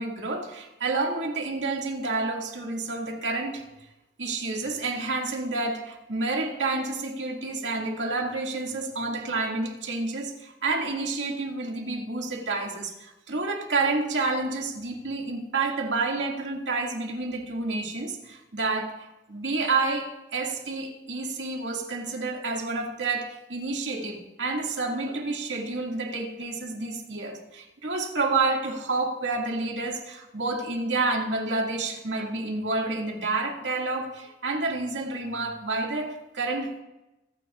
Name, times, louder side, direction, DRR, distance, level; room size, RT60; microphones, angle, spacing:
voice 1, 0.0-3.6 4.2-36.8, right 3 dB, 85° right, 0 dB, 2.1 m, -29 dB
25.5 x 9.8 x 2.4 m, 0.96 s
head